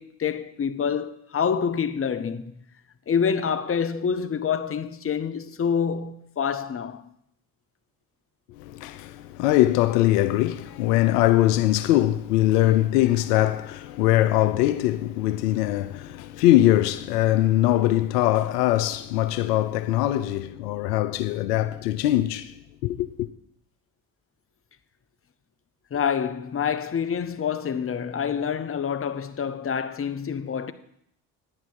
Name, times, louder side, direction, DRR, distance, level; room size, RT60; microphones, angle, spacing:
voice 1, 0.0-2.6 3.1-7.1 25.9-30.7, left 7 dB, 30° left, 0.8 m, -27 dB
voice 2, 8.6-23.3, left 14 dB, 85° left, 0.6 m, -22 dB
10.5 x 8.8 x 4.6 m
hypercardioid pair, 55°, 46 cm